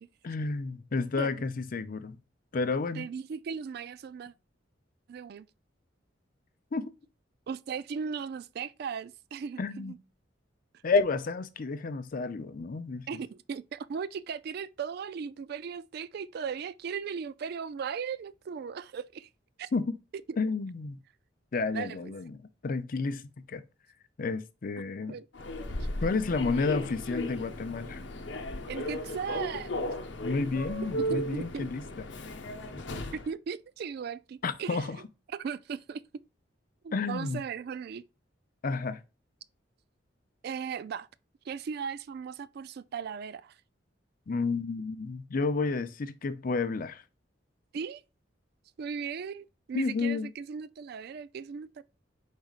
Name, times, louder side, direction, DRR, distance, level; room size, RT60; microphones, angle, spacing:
voice 1, 0.2-2.2 2.5-3.1 6.7-6.9 9.6-9.9 10.8-13.1 19.7-20.0 20.4-21.0 21.5-22.4 22.6-23.6 24.2-25.2 26.0-28.0 30.2-31.8 34.4-35.0 36.9-37.4 38.6-39.0 44.3-47.0 49.7-50.3, left 4 dB, 45° left, 0.5 m, -31 dB
voice 2, 3.0-4.3 5.1-5.5 7.5-10.0 13.1-19.3 19.6-19.7 20.1-20.2 21.7-22.1 25.1-25.3 28.7-29.9 31.0-31.7 33.1-34.9 35.3-36.0 36.8-38.0 40.4-41.1 41.5-43.6 47.7-48.0 48.8-51.8, right 6 dB, 55° right, 0.3 m, -37 dB
Human voice / Subway metro underground, 25.3-33.3, left 1 dB, 70° left, 0.8 m, -36 dB
5.0 x 4.1 x 2.4 m
head